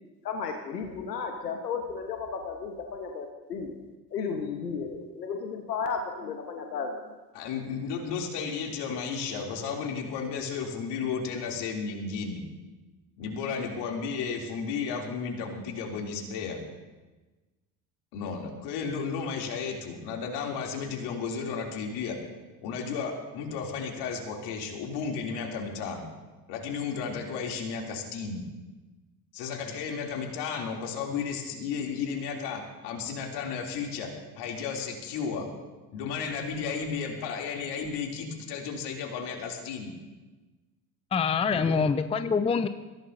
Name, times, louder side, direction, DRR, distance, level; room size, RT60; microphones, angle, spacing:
voice 1, 0.2-3.7 4.1-7.1, left 5 dB, 80° left, 4 dB, 1.4 m, -34 dB
voice 2, 7.3-12.4 13.2-16.6 18.1-22.2 22.6-26.1 26.5-28.4 29.3-34.1 34.3-35.5 35.9-40.0 41.5-41.7, left 5 dB, 55° left, 0 dB, 3.3 m, -33 dB
voice 3, 41.1-42.7, left 5 dB, 15° left, 12 dB, 0.6 m, -25 dB
21.5 x 16.0 x 2.8 m, 1.2 s
figure-of-eight pair, 65°, 48 cm